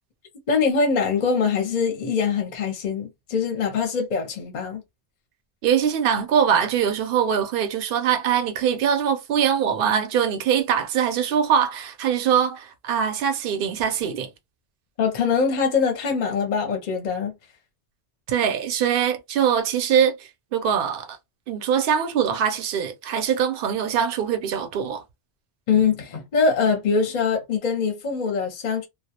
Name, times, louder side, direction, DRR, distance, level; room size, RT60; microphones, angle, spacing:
voice 1, 0.5-4.8 15.0-17.3 25.7-28.9, left 5 dB, 50° left, 0.7 m, -23 dB
voice 2, 5.6-14.3 18.3-20.2 20.5-21.2 21.5-25.0, right 8 dB, 65° right, 0.7 m, -22 dB
2.2 x 2.0 x 2.7 m
omnidirectional pair, 1.1 m